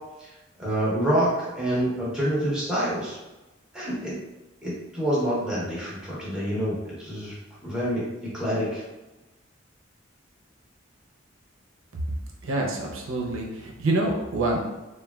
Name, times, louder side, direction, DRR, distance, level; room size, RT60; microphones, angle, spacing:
voice 1, 0.6-3.2 3.7-4.2 4.6-7.3 7.6-8.8, equal, 5° right, -8 dB, 0.8 m, -27 dB
voice 2, 12.4-14.6, right 2 dB, 90° right, -1 dB, 0.5 m, -26 dB
3.3 x 2.2 x 2.2 m, 1.1 s
head